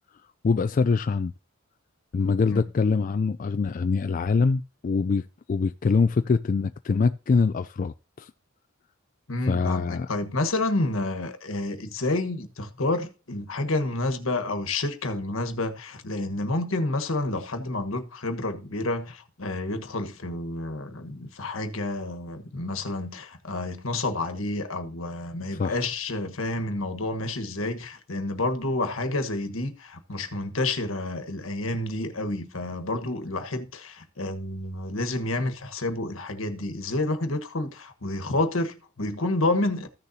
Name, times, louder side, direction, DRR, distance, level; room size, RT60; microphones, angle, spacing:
voice 1, 0.4-1.3 2.1-8.3 9.5-10.1 25.6-25.8, left 4 dB, 40° left, 0.3 m, -24 dB
voice 2, 9.3-39.9, left 2 dB, 70° left, 1.4 m, -29 dB
14.5 x 6.7 x 2.8 m
head